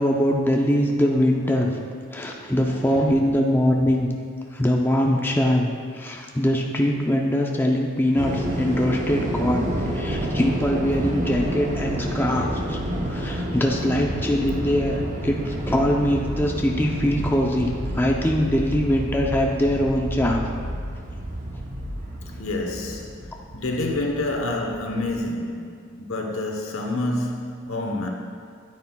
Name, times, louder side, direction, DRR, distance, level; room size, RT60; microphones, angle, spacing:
voice 1, 0.0-1.7 2.1-4.1 4.5-12.8 13.1-20.5, equal, 10° left, 0 dB, 0.5 m, -22 dB
voice 2, 1.4-1.8 2.1-3.3 13.5-13.6 22.3-28.1, left 2 dB, 85° left, 1 dB, 1.0 m, -29 dB
sound 1, 8.2-25.3, right 1 dB, 35° right, 0.7 m, -29 dB
9.4 x 9.3 x 2.3 m, 2.2 s
head